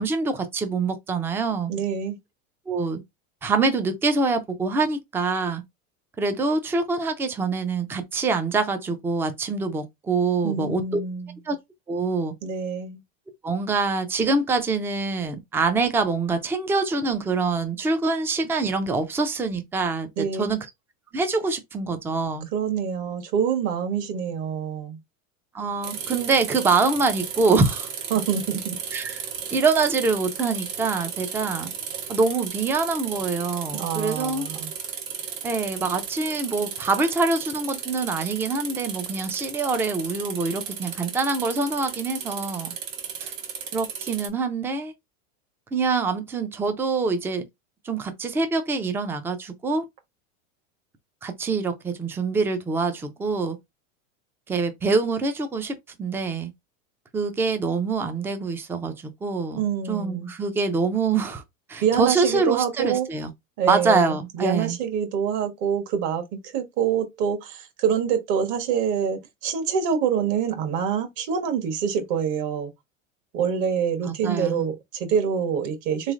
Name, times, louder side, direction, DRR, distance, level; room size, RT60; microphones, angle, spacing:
voice 1, 0.0-1.7 2.7-3.0 3.4-5.6 6.2-11.0 11.5-11.6 11.9-12.3 13.4-20.6 21.1-22.5 25.5-27.9 28.9-29.2 29.5-31.7 32.1-34.5 35.4-42.7 43.2-43.3 43.7-44.9 45.7-47.4 47.8-49.8 51.2-53.6 54.5-56.5 57.1-59.6 59.9-61.4 61.7-63.3 63.7-64.8 74.1-74.6, right 4 dB, 5° right, 0.3 m, -25 dB
voice 2, 1.7-2.2 10.4-11.3 12.4-13.0 20.2-20.5 22.5-25.0 28.1-28.8 33.7-34.7 59.6-60.3 61.8-63.1 63.6-72.7 73.3-76.1, right 7 dB, 50° right, 1.3 m, -26 dB
sound 1, 25.8-44.3, right 7 dB, 75° right, 1.4 m, -34 dB
3.5 x 3.1 x 2.4 m
supercardioid pair, 115°, 40 cm